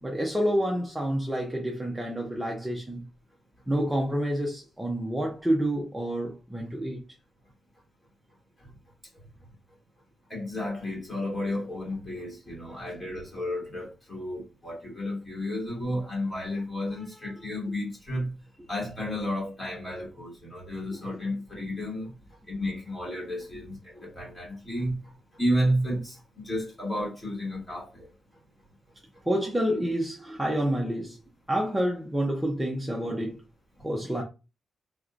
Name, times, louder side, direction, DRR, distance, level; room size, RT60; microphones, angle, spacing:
voice 1, 0.0-3.0 3.7-7.0 17.0-17.1 29.3-31.2 31.5-33.4 33.8-34.2, equal, 5° right, 0.8 m, -28 dB
voice 2, 10.3-18.3 18.7-22.1 22.5-25.0 25.3-28.1, equal, 25° left, 2.6 m, -32 dB
4.7 x 3.5 x 2.6 m
wide cardioid pair, 145°, 0 cm